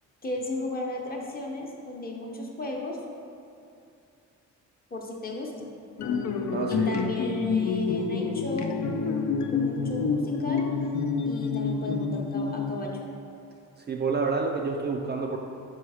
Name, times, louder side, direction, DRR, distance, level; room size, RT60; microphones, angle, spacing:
voice 1, 0.2-3.0 4.9-5.7 6.7-8.8 9.5-10.7 11.2-12.9, left 1 dB, 30° left, 0 dB, 0.8 m, -35 dB
sound 1, 6.0-13.1, left 5 dB, 60° left, 0.5 m, -28 dB
voice 2, 6.5-7.0 13.8-15.4, right 4 dB, 35° right, 2 dB, 0.4 m, -29 dB
4.5 x 4.5 x 4.8 m, 2.6 s
cardioid pair, 110°, 31 cm